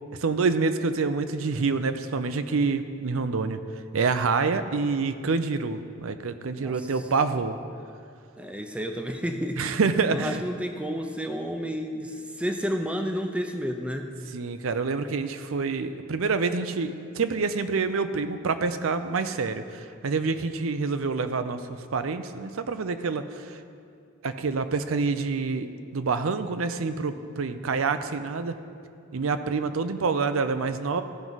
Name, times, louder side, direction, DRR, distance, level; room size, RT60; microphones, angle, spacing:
voice 1, 0.2-3.6 3.9-7.6 9.6-10.4 14.3-21.6 21.9-23.5 24.2-28.5 29.1-31.0, right 4 dB, 70° right, 10 dB, 0.5 m, -27 dB
voice 2, 6.6-6.9 8.4-9.6 10.1-14.1, equal, 5° right, 5 dB, 0.6 m, -31 dB
15.5 x 6.1 x 4.0 m, 2.4 s
head